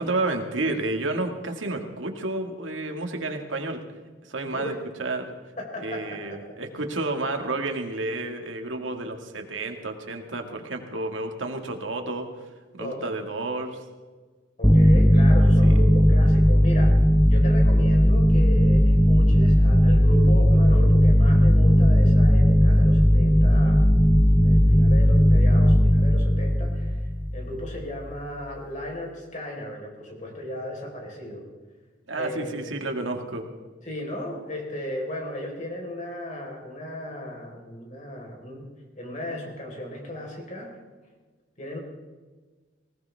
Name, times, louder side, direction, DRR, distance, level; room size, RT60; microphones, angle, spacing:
voice 1, 0.0-3.8 4.2-4.7 5.0-5.3 5.8-12.3 12.8-13.8 15.6-15.9 32.1-33.4, right 2 dB, 85° right, 4 dB, 2.0 m, -30 dB
voice 2, 5.6-6.4 12.8-13.1 14.6-17.0 17.3-23.8 24.4-27.0 27.3-31.4 32.1-32.7 33.8-38.7 39.0-40.7 41.6-41.8, equal, 40° left, 0 dB, 4.4 m, -35 dB
sound 1, 14.6-27.8, equal, 5° left, 0.8 m, -17 dB
19.5 x 18.5 x 3.5 m, 1.3 s
head